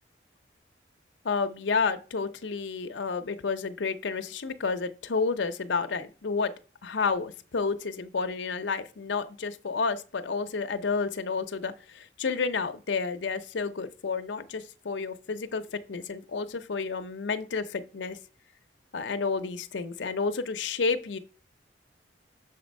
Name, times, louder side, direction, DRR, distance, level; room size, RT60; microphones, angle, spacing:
voice 1, 1.2-6.5 6.8-18.2 18.9-21.2, left 4 dB, 85° left, 0.6 m, -30 dB
6.7 x 4.3 x 5.2 m
head